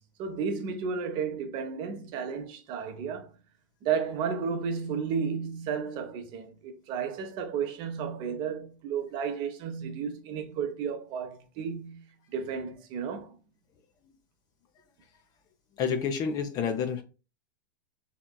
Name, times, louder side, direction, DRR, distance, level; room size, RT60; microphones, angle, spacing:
voice 1, 0.2-3.3 3.8-12.0 12.3-13.3, right 6 dB, 45° right, 0.7 m, -33 dB
voice 2, 15.8-17.0, left 6 dB, 35° left, 0.5 m, -29 dB
3.4 x 2.9 x 2.2 m
hypercardioid pair, 95°, 11 cm